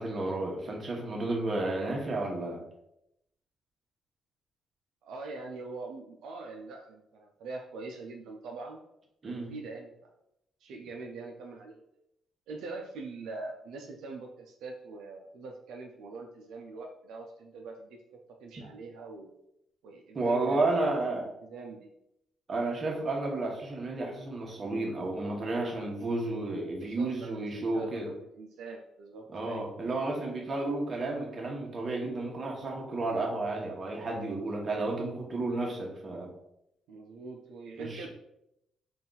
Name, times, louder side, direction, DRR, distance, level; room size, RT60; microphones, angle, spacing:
voice 1, 0.0-2.6 9.2-9.5 20.1-21.3 22.5-28.1 29.3-36.3 37.8-38.1, right 2 dB, 40° right, -1 dB, 1.1 m, -32 dB
voice 2, 5.0-8.8 9.3-9.9 10.6-11.8 12.5-19.3 19.8-20.7 21.2-21.9 26.8-29.6 36.9-38.1, right 3 dB, 85° right, 1 dB, 0.4 m, -43 dB
4.0 x 2.4 x 3.9 m, 0.81 s
cardioid pair, 90°, 0 cm